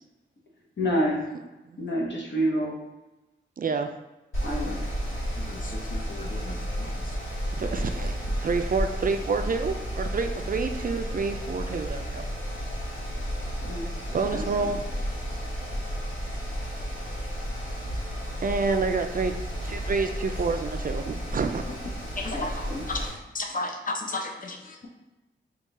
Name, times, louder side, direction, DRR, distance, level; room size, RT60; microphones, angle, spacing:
voice 1, 0.8-1.3 1.8-2.8 4.4-4.8 13.6-14.8 22.3-22.8, equal, 65° left, -1 dB, 0.9 m, -29 dB
voice 2, 3.6-3.9 7.6-12.2 14.1-14.8 18.4-19.3 19.6-21.6 24.1-24.3, right 4 dB, 45° right, 7 dB, 0.4 m, -28 dB
Mechanical fan, 4.3-23.1, equal, 85° left, 1.2 m, -32 dB
voice 3, 5.4-6.9 22.2-24.7, left 2 dB, 45° left, 3 dB, 0.6 m, -34 dB
3.6 x 2.4 x 4.0 m, 1.0 s
cardioid pair, 65°, 20 cm